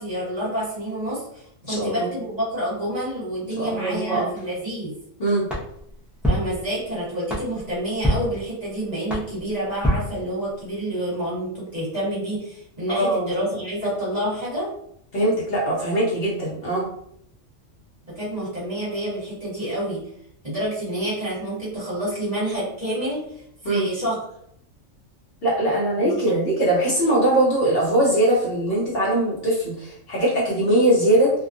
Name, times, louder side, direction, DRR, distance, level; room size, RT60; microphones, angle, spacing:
voice 1, 0.0-4.9 6.3-14.7 18.0-20.0 20.4-23.2 23.6-24.2 26.0-26.3, right 1 dB, 35° right, -9 dB, 1.3 m, -28 dB
voice 2, 1.6-2.1 3.6-4.3 5.2-5.5 12.9-13.3 15.1-16.8 23.6-23.8 25.4-31.3, right 1 dB, 55° left, -6 dB, 1.0 m, -21 dB
sound 1, 5.5-10.8, equal, ahead, 0.4 m, -28 dB
2.8 x 2.3 x 2.5 m, 0.70 s
omnidirectional pair, 1.3 m